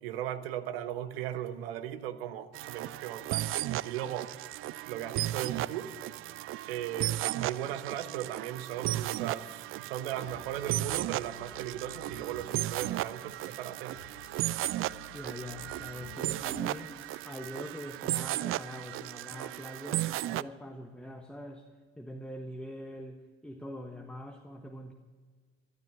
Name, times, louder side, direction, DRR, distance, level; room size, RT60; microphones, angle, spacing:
voice 1, 0.0-4.3 4.8-6.0 6.7-14.0, right 11 dB, 75° right, 13 dB, 0.8 m, -37 dB
sound 1, 2.5-20.4, right 15 dB, 45° right, 0.4 m, -35 dB
sound 2, 10.2-13.6 13.9-17.3, left 4 dB, 85° left, 1.1 m, -53 dB
voice 2, 15.1-16.9 17.2-21.7 22.0-24.9, equal, 5° left, 4 dB, 1.2 m, -43 dB
13.0 x 12.0 x 7.2 m, 1.5 s
figure-of-eight pair, 45°, 30 cm